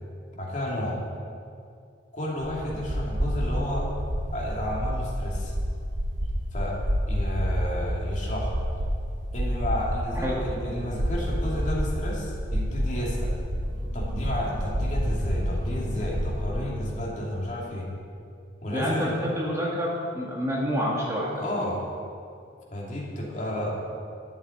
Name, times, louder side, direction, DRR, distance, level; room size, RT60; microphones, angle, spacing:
voice 1, 0.4-1.0 2.1-3.9 4.3-5.5 6.5-6.8 7.1-8.5 9.3-13.3 13.9-17.9 18.6-19.2 21.4-21.8 22.7-23.7, left 1 dB, 40° left, -3 dB, 2.7 m, -31 dB
sound 1, 2.4-16.4, equal, 80° right, 2.2 m, -29 dB
voice 2, 18.7-21.4, equal, 15° right, -4 dB, 1.8 m, -28 dB
12.0 x 7.4 x 9.6 m, 2.4 s
head